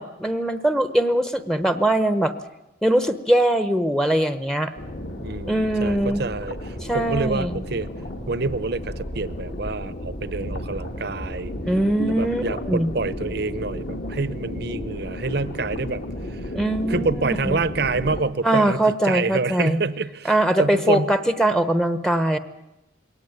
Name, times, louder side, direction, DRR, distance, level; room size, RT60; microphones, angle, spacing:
voice 1, 0.0-2.3 2.8-4.7 5.5-6.2 6.8-7.6 11.7-12.9 16.5-17.6 18.4-19.8 20.2-22.4, right 1 dB, 5° left, 10 dB, 1.0 m, -21 dB
sound 1, 4.8-18.2, left 1 dB, 55° left, 2.7 m, -33 dB
voice 2, 5.2-7.9 8.3-11.5 12.1-16.5 16.9-21.1, right 3 dB, 55° right, 16 dB, 0.9 m, -27 dB
22.5 x 18.0 x 9.4 m, 0.94 s
head